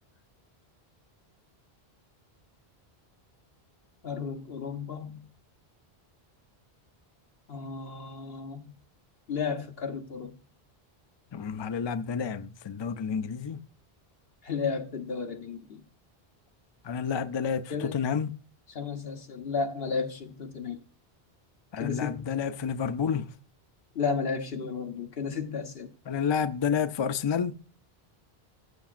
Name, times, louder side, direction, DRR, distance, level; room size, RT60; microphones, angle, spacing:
voice 1, 4.0-5.3 7.5-8.7 9.3-10.3 14.4-15.8 17.7-18.0 18.7-20.8 21.8-22.3 23.9-25.9, left 5 dB, 70° left, 1.3 m, -33 dB
voice 2, 11.3-13.6 16.8-18.3 21.7-23.3 26.1-27.5, left 6 dB, 45° left, 0.3 m, -30 dB
14.5 x 7.1 x 2.5 m
omnidirectional pair, 1.0 m